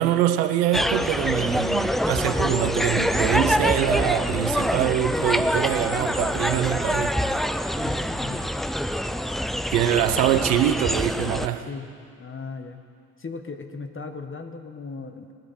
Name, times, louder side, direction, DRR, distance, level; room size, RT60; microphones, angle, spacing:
voice 1, 0.0-7.3 9.7-11.7, right 11 dB, 85° right, 10 dB, 0.9 m, -24 dB
sound 1, 0.7-11.5, equal, ahead, 0.4 m, -25 dB
voice 2, 7.8-8.5 10.5-10.6 11.6-11.9 12.2-12.8 13.2-15.3, left 4 dB, 25° left, 6 dB, 1.6 m, -37 dB
22.0 x 8.0 x 4.4 m, 2.4 s
hypercardioid pair, 65°, 48 cm